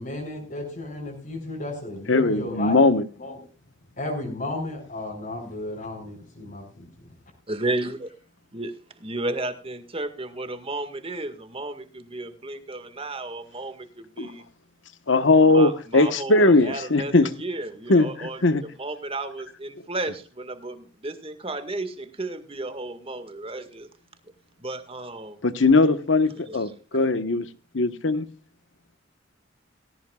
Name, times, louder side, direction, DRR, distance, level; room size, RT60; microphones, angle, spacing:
voice 1, 0.0-2.8 3.2-3.4 4.0-6.9, left 1 dB, 50° left, 5.1 m, -33 dB
voice 2, 2.1-3.1 14.2-14.3 15.1-17.3 17.9-18.6 25.4-27.5 27.7-28.3, left 2 dB, 85° left, 1.3 m, -19 dB
voice 3, 7.5-8.1 8.5-14.4 15.5-23.9 24.6-25.4 26.4-26.6 26.9-27.0, right 2 dB, 30° right, 1.9 m, -33 dB
18.5 x 16.5 x 2.4 m
head